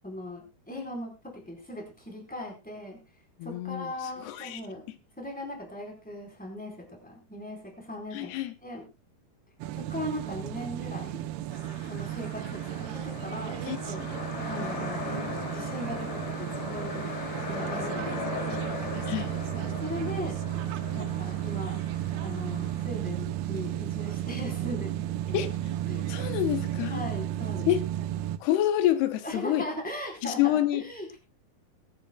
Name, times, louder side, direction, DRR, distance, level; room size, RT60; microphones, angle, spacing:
voice 1, 0.0-3.0 3.4-4.8 5.2-8.3 8.6-8.8 9.7-11.3 11.9-14.1 14.5-15.1 15.5-17.1 17.5-18.3 19.5-20.4 20.9-21.8 22.2-25.5 25.9-26.0 26.9-27.7 29.2-31.2, left 1 dB, ahead, 4.0 m, -39 dB
voice 2, 3.4-4.6 8.1-8.5 13.7-13.8 19.1-19.3 25.3-25.5 26.1-27.0 27.7-27.9 28.4-29.7 30.2-30.8, left 13 dB, 85° left, 3.0 m, -27 dB
sound 1, 9.6-28.4, right 13 dB, 85° right, 2.8 m, -33 dB
sound 2, 11.5-22.9, left 3 dB, 45° left, 3.8 m, -38 dB
22.0 x 10.5 x 2.3 m
omnidirectional pair, 4.5 m